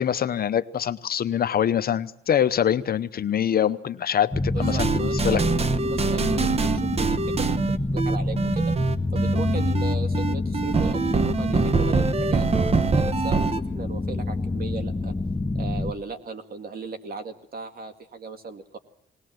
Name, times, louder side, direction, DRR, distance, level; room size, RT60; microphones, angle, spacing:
voice 1, 0.0-5.4, left 9 dB, 50° left, 13 dB, 0.8 m, -24 dB
sound 1, 4.3-15.9, left 2 dB, 15° left, 1.0 m, -27 dB
voice 2, 4.5-8.7 9.1-15.1 15.5-18.8, right 4 dB, 50° right, 7 dB, 2.1 m, -37 dB
sound 2, 4.6-13.6, right 4 dB, 30° right, 0.9 m, -24 dB
19.5 x 19.0 x 7.8 m, 0.71 s
cardioid pair, 90°, 20 cm